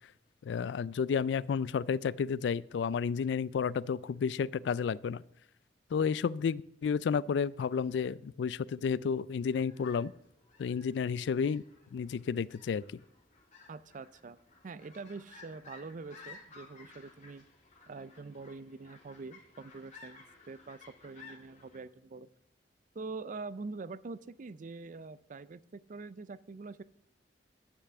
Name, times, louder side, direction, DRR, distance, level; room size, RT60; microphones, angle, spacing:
voice 1, 0.4-5.2 5.9-10.1 10.6-11.6 11.9-12.8, left 6 dB, 70° left, 22 dB, 0.3 m, -31 dB
sound 1, 9.4-21.8, left 4 dB, 45° left, 2.5 m, -56 dB
voice 2, 13.7-14.4 14.6-17.4 17.9-22.3 22.9-26.8, right 3 dB, 45° right, 17 dB, 0.4 m, -44 dB
9.9 x 5.9 x 7.7 m, 0.76 s
head